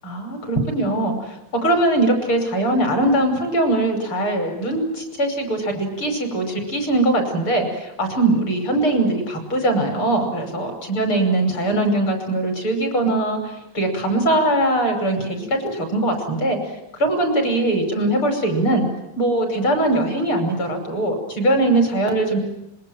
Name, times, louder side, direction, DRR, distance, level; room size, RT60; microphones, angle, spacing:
voice 1, 0.0-16.6 16.9-18.9 19.2-22.4, right 1 dB, 40° left, 5 dB, 6.3 m, -21 dB
26.5 x 23.0 x 9.1 m, 0.86 s
omnidirectional pair, 3.8 m